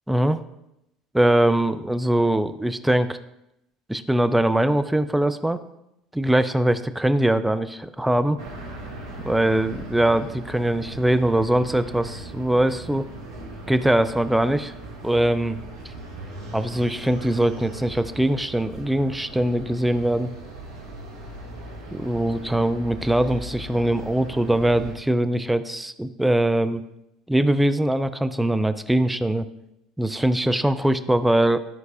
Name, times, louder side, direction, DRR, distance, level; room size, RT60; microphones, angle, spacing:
voice 1, 0.1-0.4 1.1-3.2 3.9-5.6 6.1-8.4 9.2-13.1 13.7-14.7 15.0-15.6 16.5-20.3 21.9-26.8 27.3-29.5 30.0-31.7, right 1 dB, 5° right, 10 dB, 0.5 m, -22 dB
sound 1, 8.4-24.9, right 2 dB, 75° right, 1.2 m, -39 dB
13.5 x 4.6 x 2.5 m, 0.86 s
figure-of-eight pair, 65°, 2 cm